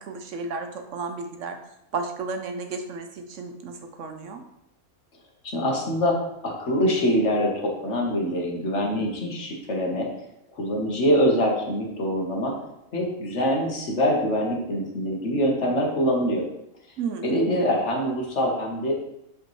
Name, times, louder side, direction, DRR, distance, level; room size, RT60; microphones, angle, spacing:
voice 1, 0.0-1.6 1.9-4.4 17.0-17.4, right 4 dB, 65° right, 5 dB, 0.9 m, -33 dB
voice 2, 5.4-10.1 10.5-12.5 12.9-16.4 17.2-18.9, equal, 55° left, 0 dB, 1.5 m, -24 dB
7.9 x 5.3 x 3.1 m, 0.83 s
omnidirectional pair, 1.5 m